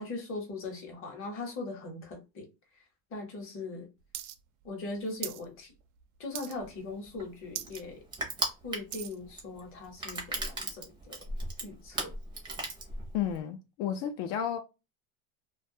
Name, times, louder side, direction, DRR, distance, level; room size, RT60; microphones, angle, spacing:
voice 1, 0.0-2.5 3.1-3.9 4.6-5.7 6.2-8.0 8.6-11.2 11.6-12.1, left 3 dB, 30° left, 0.8 m, -40 dB
sound 1, 4.1-4.4 4.6-5.4 5.8-6.0 6.3-6.8 7.2-7.3 7.5-7.8 8.3-9.2 9.8-9.9, right 12 dB, 65° right, 0.5 m, -40 dB
Crushing, 6.6-13.4, right 2 dB, 10° right, 0.5 m, -37 dB
voice 2, 13.1-14.6, left 9 dB, 75° left, 0.6 m, -32 dB
2.2 x 2.2 x 2.6 m
supercardioid pair, 140°, 43 cm